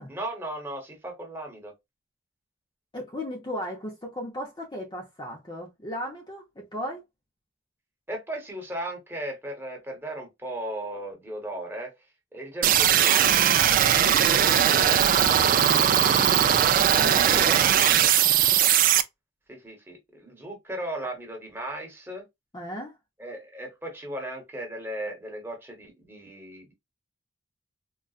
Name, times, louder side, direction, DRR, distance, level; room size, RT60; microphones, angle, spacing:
voice 1, 0.1-1.7 8.1-11.9 12.3-13.2 17.3-17.8 19.5-22.2 23.2-26.7, right 1 dB, 10° right, 1.1 m, -36 dB
voice 2, 2.9-7.0 14.2-17.9 22.5-23.0, equal, 20° left, 0.7 m, -37 dB
sound 1, 12.6-19.0, right 10 dB, 45° right, 0.3 m, -20 dB
3.9 x 2.3 x 2.4 m
head